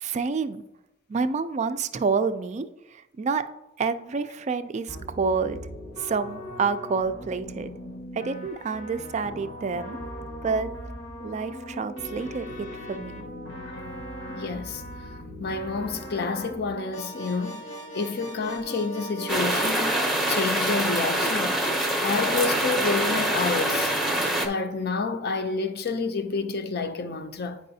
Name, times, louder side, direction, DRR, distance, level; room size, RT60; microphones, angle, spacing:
voice 1, 0.0-0.6 1.1-3.4 3.8-5.6 6.0-7.7 8.1-10.0 10.4-10.7 11.2-12.5 12.9-13.3, right 5 dB, 35° right, 0.3 m, -28 dB
sound 1, 4.9-19.6, equal, 85° left, 1.2 m, -39 dB
voice 2, 14.3-14.8 15.4-17.6 17.9-21.7 22.0-23.9 24.4-27.6, left 4 dB, 55° left, 0.5 m, -29 dB
sound 2, 19.3-24.5, right 1 dB, ahead, 0.7 m, -25 dB
9.2 x 4.8 x 2.7 m
head